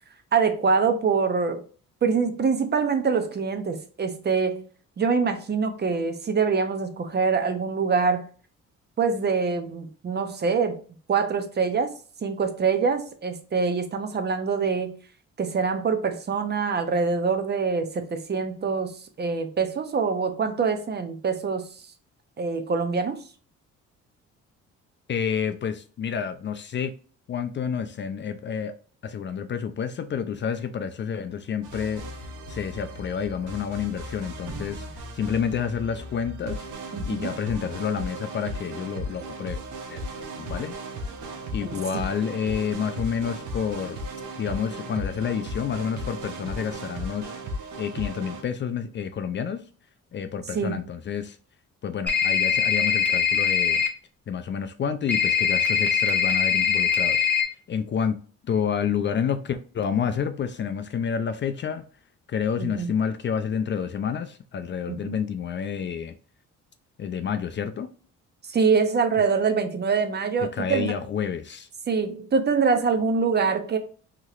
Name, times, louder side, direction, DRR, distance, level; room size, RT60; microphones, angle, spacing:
voice 1, 0.3-1.6 2.0-4.7 5.0-8.3 9.0-10.8 11.1-11.9 12.2-14.9 15.4-18.9 19.2-21.7 22.4-23.2 36.9-37.3 41.6-42.1 50.5-50.8 62.6-62.9 64.9-65.2 68.5-70.9 71.9-73.8, right 5 dB, 35° right, 0.6 m, -24 dB
voice 2, 25.1-26.9 27.3-28.7 29.0-32.0 32.5-36.7 37.0-39.6 39.9-40.0 40.4-40.7 41.5-44.0 44.4-47.3 47.8-49.6 50.1-51.4 51.8-53.8 54.3-57.3 57.7-58.2 58.4-61.8 62.3-66.1 67.0-67.9 70.5-71.7, left 7 dB, 40° left, 0.4 m, -29 dB
sound 1, 31.6-48.4, equal, 80° right, 0.7 m, -36 dB
sound 2, 52.1-53.9 55.1-57.4, left 6 dB, 5° left, 0.7 m, -22 dB
2.9 x 2.9 x 2.4 m
cardioid pair, 90°, 30 cm